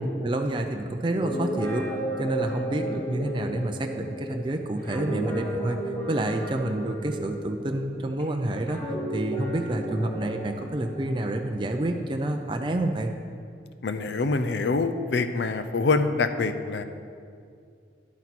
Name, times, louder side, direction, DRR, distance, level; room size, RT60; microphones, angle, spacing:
voice 1, 0.0-1.9 2.2-8.8 9.1-13.1, right 1 dB, 25° right, 4 dB, 0.5 m, -28 dB
Guitar, 1.0-8.2 8.7-12.4, right 1 dB, 10° left, 1.2 m, -34 dB
voice 2, 13.8-16.8, left 3 dB, 75° left, 9 dB, 0.6 m, -25 dB
10.5 x 8.7 x 4.2 m, 2.3 s
head